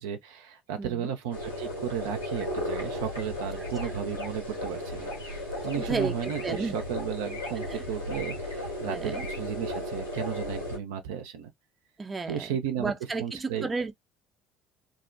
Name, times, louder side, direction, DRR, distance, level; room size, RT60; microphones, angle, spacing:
voice 1, 0.0-5.1 5.6-11.5 12.3-12.9 13.2-13.7, right 9 dB, 70° right, 0.5 m, -34 dB
voice 2, 0.8-1.1 3.6-3.9 5.8-6.8 7.6-7.8 8.9-9.2 12.0-13.9, right 4 dB, 20° right, 0.5 m, -33 dB
sound 1, 1.3-10.8, left 1 dB, 90° left, 0.8 m, -35 dB
2.6 x 2.1 x 2.5 m
figure-of-eight pair, 55°, 0 cm